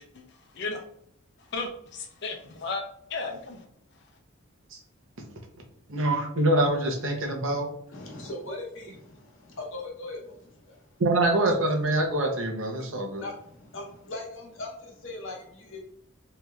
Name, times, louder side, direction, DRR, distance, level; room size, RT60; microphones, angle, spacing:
voice 1, 1.5-2.8 3.1-3.6, left 3 dB, 50° left, 4 dB, 0.5 m, -34 dB
voice 2, 5.9-7.7 11.0-13.2, right 1 dB, 70° right, 2 dB, 0.7 m, -25 dB
voice 3, 7.9-10.9 12.7-12.8 13.2-15.8, left 2 dB, 70° left, 0 dB, 0.8 m, -40 dB
3.1 x 2.8 x 2.3 m, 0.71 s
head